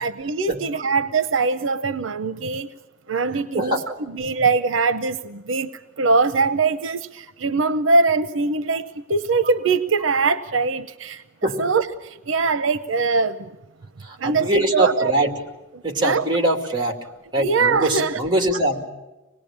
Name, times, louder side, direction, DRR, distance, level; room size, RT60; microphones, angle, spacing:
voice 1, 0.0-2.7 3.1-5.7 6.0-11.2 11.6-13.6 14.2-15.1 16.0-16.2 17.4-18.2, right 4 dB, 80° right, 12 dB, 0.7 m, -22 dB
voice 2, 14.0-15.3 15.8-17.0 17.3-18.9, right 1 dB, 25° right, 4 dB, 2.4 m, -22 dB
25.5 x 19.5 x 8.7 m, 1.1 s
head